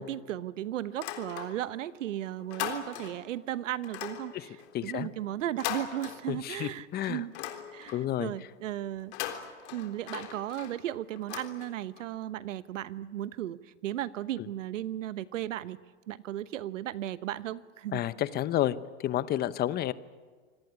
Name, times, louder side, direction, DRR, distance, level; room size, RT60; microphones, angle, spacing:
voice 1, 0.0-7.3 7.7-9.1 9.7-15.8 16.1-18.0, right 12 dB, 80° right, 16 dB, 1.2 m, -36 dB
sound 1, 0.9-1.9 2.2-3.3 3.8-6.7 7.0-8.2 9.0-12.1, left 10 dB, 60° left, 3.7 m, -40 dB
voice 2, 4.7-5.1 6.3-7.2 7.9-8.3 17.9-18.8 19.0-19.9, left 12 dB, 25° left, 16 dB, 0.9 m, -30 dB
26.5 x 19.0 x 9.7 m, 1.5 s
hypercardioid pair, 125°, 37 cm